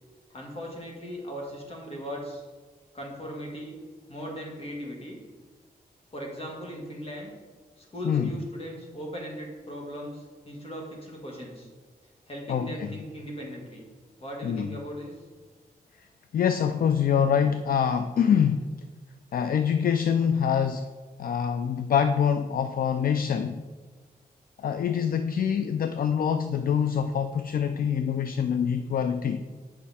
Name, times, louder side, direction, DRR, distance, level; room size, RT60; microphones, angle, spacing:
voice 1, 0.3-2.4 2.9-3.7 4.1-5.2 6.1-7.3 7.8-11.7 12.3-13.8 14.2-15.1, equal, 35° left, -1 dB, 1.9 m, -38 dB
voice 2, 12.5-12.9 14.4-14.8 16.3-18.7 19.3-20.9 21.2-23.6 24.6-29.4, left 7 dB, 60° left, 9 dB, 0.4 m, -25 dB
8.4 x 5.3 x 4.2 m, 1.4 s
wide cardioid pair, 110°, 16 cm